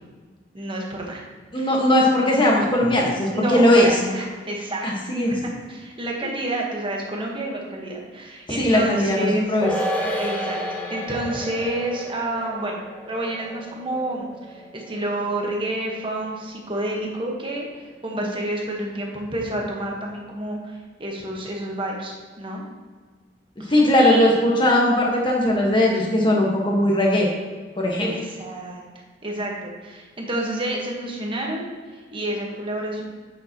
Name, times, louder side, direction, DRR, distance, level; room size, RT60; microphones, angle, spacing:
voice 1, 0.5-1.2 1.5-1.8 3.3-5.2 5.4-9.6 10.2-10.6 10.9-12.8 13.1-22.6 23.6-24.3 28.0-28.8 29.2-33.0, right 1 dB, 25° right, -1 dB, 1.3 m, -29 dB
voice 2, 1.5-3.9 4.8-5.4 8.6-9.7 23.6-27.3 27.8-28.1, left 1 dB, 25° left, -2 dB, 1.5 m, -19 dB
sound 1, 9.6-16.3 16.6-16.7, equal, 10° left, 1.0 m, -31 dB
8.1 x 7.0 x 3.0 m, 1.5 s
head